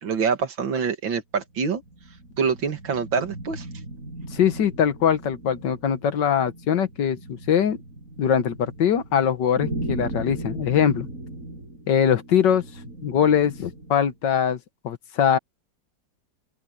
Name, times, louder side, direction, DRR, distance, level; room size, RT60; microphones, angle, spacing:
voice 1, 0.0-1.8 2.4-3.7, right 6 dB, 85° right, 2.6 m, -25 dB
sound 1, 1.5-14.1, right 2 dB, 45° right, 6.8 m, -38 dB
voice 2, 4.3-7.8 8.2-11.1 11.9-12.6 13.0-14.6 14.8-15.4, left 8 dB, 70° left, 1.8 m, -22 dB
open air
omnidirectional pair, 2.0 m